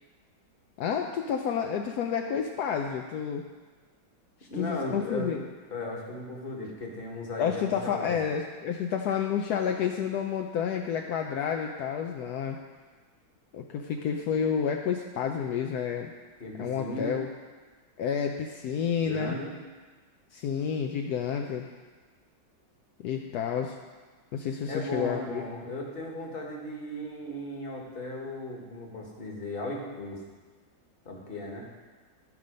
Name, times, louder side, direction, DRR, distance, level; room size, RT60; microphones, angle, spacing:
voice 1, 0.8-3.5 4.6-5.5 7.4-12.6 13.5-16.1 16.6-17.3 18.0-19.3 20.3-21.7 23.0-23.8 24.3-25.4, left 7 dB, 75° left, 3 dB, 0.9 m, -30 dB
voice 2, 4.5-5.4 5.7-8.2 16.4-17.2 19.0-19.6 24.7-30.2 31.0-31.6, left 1 dB, 30° left, -1 dB, 1.4 m, -36 dB
12.5 x 5.4 x 5.1 m, 1.4 s
omnidirectional pair, 2.2 m